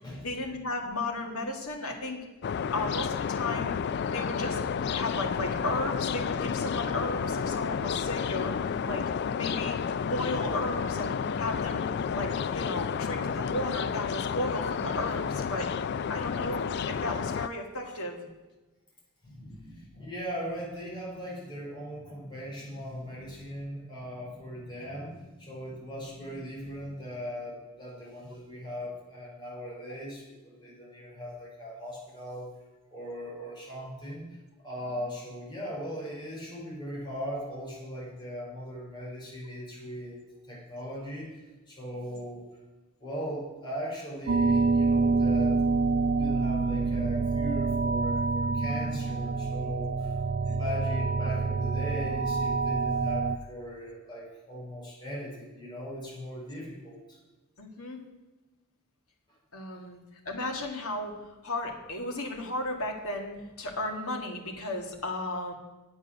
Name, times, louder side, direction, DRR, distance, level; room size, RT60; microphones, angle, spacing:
voice 1, 0.2-2.2 2.7-3.8 4.1-4.7 4.9-8.6 8.9-9.0 9.3-9.8 10.1-15.7 16.1-18.3 50.4-50.6 57.6-58.0 59.5-60.0 60.3-61.2 61.4-65.5, left 2 dB, 80° left, 1 dB, 1.9 m, -34 dB
sound 1, 2.4-17.5, left 6 dB, 50° left, 0.3 m, -31 dB
voice 2, 19.2-32.5 32.9-40.2 40.5-42.5 43.0-50.1 50.4-57.2, equal, 20° left, -5 dB, 4.4 m, -39 dB
sound 2, 44.3-53.4, right 4 dB, 45° right, 0.3 m, -27 dB
9.6 x 8.1 x 6.4 m, 1.2 s
head